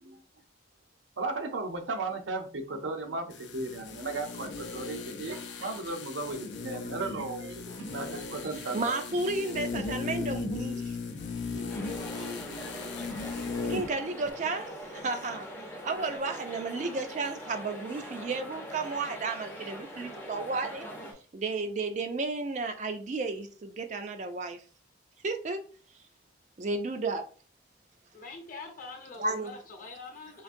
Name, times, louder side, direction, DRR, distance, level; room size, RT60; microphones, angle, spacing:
voice 1, 1.2-9.0, right 3 dB, 80° right, 0.6 m, -36 dB
sound 1, 3.3-14.0 14.2-14.3, left 4 dB, 70° left, 0.5 m, -37 dB
voice 2, 8.5-11.0 11.5-11.8 12.1-12.4 13.6-15.6 15.8-20.9 21.3-24.6 25.2-25.6 26.6-27.2 29.2-29.5, right 3 dB, 40° right, 0.4 m, -33 dB
sound 2, 11.7-21.1, equal, 10° left, 0.5 m, -43 dB
voice 3, 28.1-30.4, left 3 dB, 45° left, 0.8 m, -44 dB
3.8 x 2.5 x 2.5 m
head